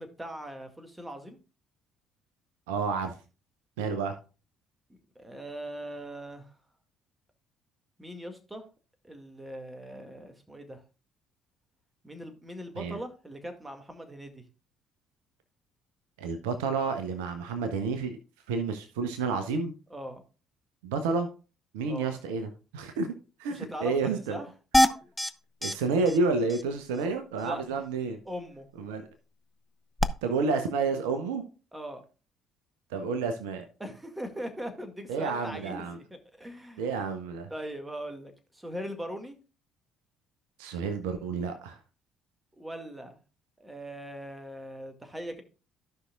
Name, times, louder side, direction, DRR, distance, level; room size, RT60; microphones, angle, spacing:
voice 1, 0.0-1.4 4.9-6.5 8.0-8.6 9.0-10.8 12.0-14.4 19.9-20.2 21.9-22.2 23.5-24.5 27.4-27.6 28.3-28.7 31.7-32.0 33.8-36.9 37.5-39.4 42.6-43.2 43.6-45.4, equal, 15° right, 6 dB, 2.1 m, -40 dB
voice 2, 2.7-3.1 3.8-4.1 12.8-13.0 16.2-18.2 18.5-19.7 20.8-21.3 21.7-23.1 23.4-24.4 25.6-28.2 28.8-29.1 30.2-31.4 32.9-33.6 35.1-36.0 36.8-37.5 40.6-41.8, right 4 dB, 70° right, 8 dB, 0.9 m, -30 dB
sound 1, 24.7-25.3 25.6-25.7 26.1-26.2 26.5-26.6 30.0-30.1, left 1 dB, 10° left, 0.7 m, -22 dB
15.0 x 5.7 x 2.4 m, 0.33 s
figure-of-eight pair, 50°, 0 cm